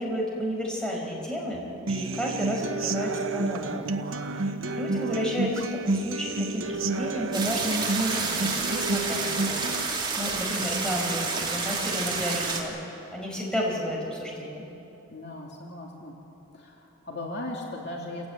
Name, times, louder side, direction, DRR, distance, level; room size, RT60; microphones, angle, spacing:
voice 1, 0.0-3.8 4.3-4.4 4.7-9.7 10.2-12.7 13.1-14.7, equal, 5° left, -2 dB, 5.1 m, -31 dB
Human voice / Acoustic guitar, 1.9-9.9, right 3 dB, 70° right, 1.1 m, -30 dB
sound 1, 7.3-12.6, right 4 dB, 20° right, 3.0 m, -29 dB
voice 2, 15.1-16.1 16.5-18.3, left 2 dB, 50° left, -1 dB, 2.8 m, -37 dB
28.5 x 16.5 x 9.2 m, 3.0 s
head